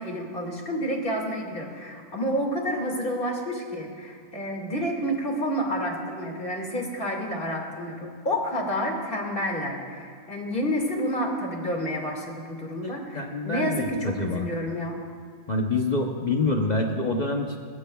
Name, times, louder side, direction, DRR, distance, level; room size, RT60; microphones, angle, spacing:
voice 1, 0.0-15.0, equal, 30° left, 1 dB, 2.1 m, -29 dB
voice 2, 12.6-14.5 15.5-17.6, left 2 dB, 75° left, 2 dB, 0.4 m, -27 dB
22.0 x 19.5 x 2.3 m, 2.1 s
omnidirectional pair, 2.1 m